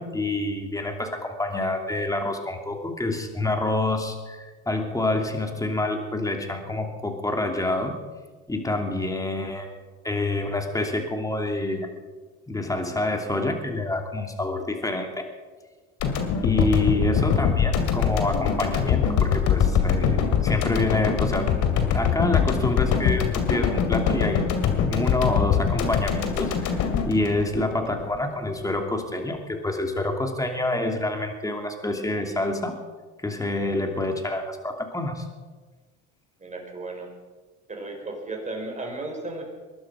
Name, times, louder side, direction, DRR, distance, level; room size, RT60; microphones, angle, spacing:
voice 1, 0.0-8.0 8.5-9.7 10.0-11.9 12.5-15.3 16.4-21.5 21.9-24.4 24.8-32.8 33.2-35.3, left 2 dB, 10° left, 4 dB, 2.7 m, -27 dB
sound 1, 16.0-28.2, left 7 dB, 60° left, 2.5 m, -23 dB
voice 2, 36.4-37.1 37.7-39.4, right 2 dB, 20° right, 1 dB, 5.0 m, -35 dB
21.5 x 11.5 x 5.0 m, 1.4 s
supercardioid pair, 90°, 34 cm